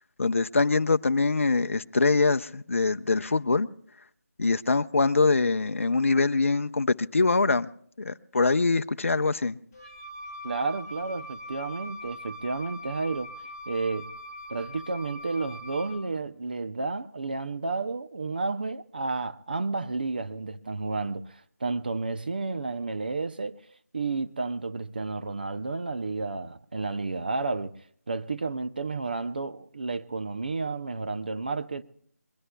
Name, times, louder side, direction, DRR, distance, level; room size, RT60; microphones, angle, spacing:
voice 1, 0.2-3.7 4.4-7.7 8.0-9.6, left 3 dB, 55° left, 0.6 m, -24 dB
Wind instrument woodwind instrument, 9.7-16.1, equal, 20° left, 1.5 m, -42 dB
voice 2, 10.4-13.3 13.7-14.1 14.5-23.6 23.9-27.7 28.1-31.8, right 3 dB, 35° right, 0.5 m, -31 dB
22.0 x 21.5 x 2.2 m
figure-of-eight pair, 170°, 8 cm